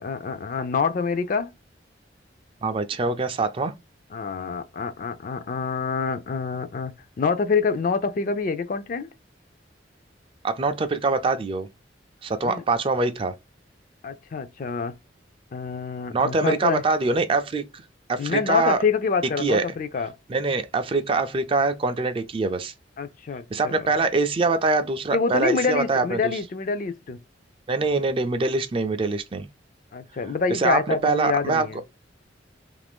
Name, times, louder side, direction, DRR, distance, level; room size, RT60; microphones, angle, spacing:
voice 1, 0.0-1.5 4.1-9.1 12.4-12.6 14.0-14.9 15.5-16.8 18.2-20.1 23.0-23.9 25.1-27.2 29.9-31.8, left 5 dB, 45° left, 0.4 m, -26 dB
voice 2, 2.6-3.7 10.4-11.7 12.2-13.3 16.1-17.8 18.1-18.8 19.4-19.6 20.3-22.7 23.5-26.2 27.7-29.5 30.5-31.7, right 3 dB, 30° right, 0.3 m, -24 dB
2.8 x 2.5 x 3.4 m
head